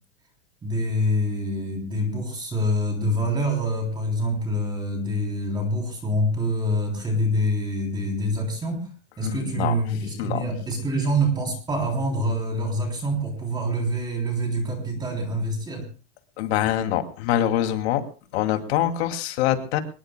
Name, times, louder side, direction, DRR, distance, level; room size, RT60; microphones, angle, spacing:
voice 1, 0.6-8.9 9.2-15.9, equal, 10° right, 1 dB, 3.4 m, -26 dB
voice 2, 9.2-9.7 10.2-10.4 16.4-18.0 18.3-19.8, left 11 dB, 60° left, 6 dB, 2.6 m, -24 dB
24.0 x 20.5 x 2.3 m, 0.37 s
supercardioid pair, 175°, 36 cm